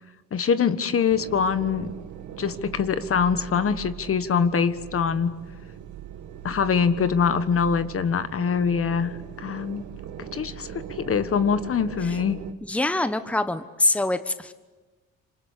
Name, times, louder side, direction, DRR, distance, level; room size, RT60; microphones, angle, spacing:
voice 1, 0.3-1.9 2.4-5.3 6.4-9.1 9.4-9.8 10.2-12.4, left 6 dB, 45° left, 12 dB, 1.4 m, -24 dB
sound 1, 1.1-12.5, right 9 dB, 75° right, 1.6 m, -40 dB
voice 2, 12.6-14.5, left 2 dB, 5° left, 11 dB, 1.1 m, -25 dB
27.0 x 26.0 x 8.4 m, 1.2 s
cardioid pair, 90°, 30 cm